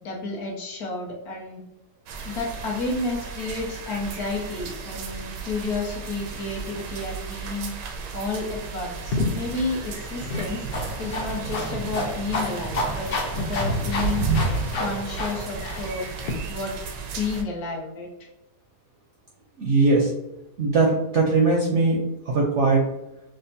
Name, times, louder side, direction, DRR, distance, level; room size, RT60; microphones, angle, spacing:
voice 1, 0.0-1.6 2.2-7.7 8.1-10.6 11.0-13.1 13.3-14.3 14.8-16.1 16.5-16.8 17.1-18.1, left 3 dB, 65° left, -3 dB, 1.4 m, -31 dB
sound 1, 2.1-17.4, right 5 dB, 85° right, 1.2 m, -33 dB
sound 2, 9.1-16.3, left 2 dB, 80° left, 0.5 m, -30 dB
voice 2, 19.6-20.1 20.6-22.0 22.3-22.8, right 3 dB, 60° right, -1 dB, 0.8 m, -20 dB
6.2 x 2.1 x 2.8 m, 0.90 s
omnidirectional pair, 1.8 m